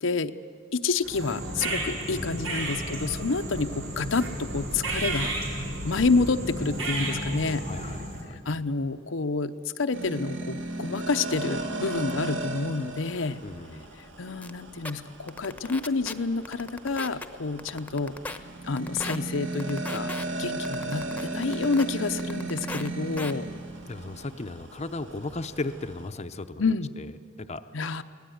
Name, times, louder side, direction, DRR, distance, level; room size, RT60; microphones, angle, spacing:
voice 1, 0.0-0.3 0.7-7.7 8.4-13.4 14.2-18.2 18.6-23.5 26.6-26.9 27.7-28.0, left 4 dB, 80° left, 8 dB, 0.8 m, -28 dB
sound 1, 1.0-8.3, right 1 dB, 85° right, 4.5 m, -32 dB
voice 2, 2.1-3.0 7.6-8.4 13.4-13.8 23.9-26.6 27.0-27.1 27.4-27.6, left 2 dB, 35° left, 8 dB, 0.7 m, -36 dB
sound 2, 9.9-26.1, right 2 dB, 70° right, 2.6 m, -36 dB
sound 3, 14.4-14.5 14.8-14.9 15.3-16.1 16.4-17.2 17.6-18.4 18.8-19.2 19.6-20.2 20.6-21.8 22.2-22.9 23.2-23.3, left 2 dB, 10° left, 1.0 m, -36 dB
23.5 x 17.5 x 9.4 m, 2.3 s
head